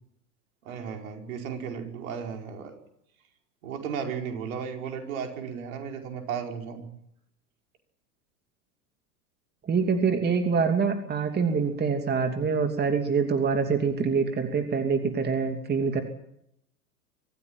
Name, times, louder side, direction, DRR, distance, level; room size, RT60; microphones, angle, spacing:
voice 1, 0.7-2.8 3.6-6.9, right 7 dB, 60° right, 3 dB, 5.1 m, -35 dB
voice 2, 9.7-16.0, right 5 dB, 20° right, 6 dB, 2.8 m, -25 dB
25.0 x 15.5 x 8.9 m, 0.75 s
figure-of-eight pair, 95°, 46 cm